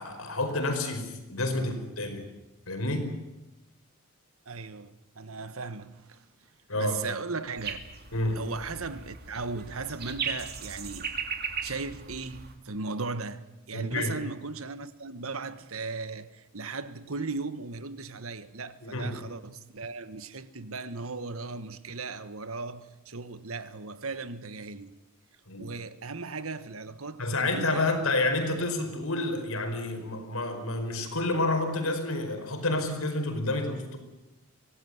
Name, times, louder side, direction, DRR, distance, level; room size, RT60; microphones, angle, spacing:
voice 1, 0.0-2.3 2.7-3.1 6.7-7.0 8.1-8.4 13.7-14.1 18.8-19.2 25.5-25.7 27.2-34.0, left 2 dB, 75° left, 5.0 m, -29 dB
voice 2, 4.4-6.2 6.7-7.8 8.3-11.1 11.6-24.9 25.6-27.9, right 4 dB, 75° right, 1.4 m, -37 dB
sound 1, 7.6-12.5, right 6 dB, 50° right, 2.7 m, -37 dB
24.5 x 17.5 x 9.5 m
head